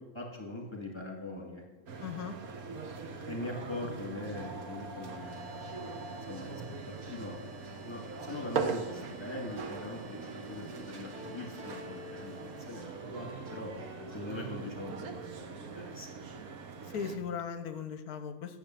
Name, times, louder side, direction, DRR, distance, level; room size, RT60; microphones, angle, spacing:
voice 1, 0.1-2.4 3.2-7.4 7.8-13.7 14.1-16.1, left 2 dB, 15° left, 0 dB, 1.7 m, -42 dB
sound 1, 1.9-17.2, right 5 dB, 60° right, 1.3 m, -41 dB
voice 2, 2.0-2.4 16.9-18.6, left 7 dB, 65° left, 11 dB, 1.1 m, -38 dB
sound 2, 5.1-16.2, left 1 dB, 85° right, 3.9 m, -57 dB
sound 3, 6.0-14.7, equal, 30° right, 1.4 m, -51 dB
9.8 x 6.8 x 7.4 m, 1.2 s
omnidirectional pair, 1.9 m